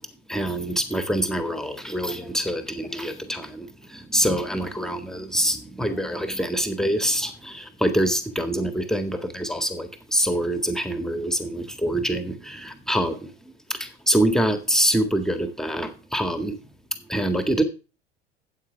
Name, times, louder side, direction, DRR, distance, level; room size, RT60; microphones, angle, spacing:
voice 1, 0.3-13.3 13.7-16.6 17.1-17.6, right 1 dB, ahead, 7 dB, 1.7 m, -25 dB
13.0 x 8.6 x 3.4 m, 0.32 s
figure-of-eight pair, 75°, 31 cm